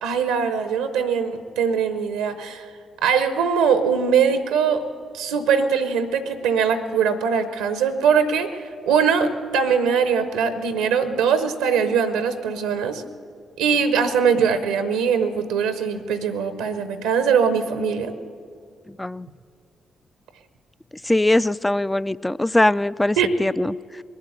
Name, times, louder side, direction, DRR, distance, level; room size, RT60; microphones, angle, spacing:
voice 1, 0.0-2.6 3.0-4.9 5.1-8.5 8.9-13.0 13.6-18.1 23.2-23.3, right 6 dB, 80° right, 11 dB, 0.7 m, -21 dB
voice 2, 18.9-19.3 21.0-24.0, left 1 dB, 15° left, 19 dB, 0.3 m, -21 dB
21.0 x 8.1 x 7.8 m, 2.2 s
hypercardioid pair, 40°, 0 cm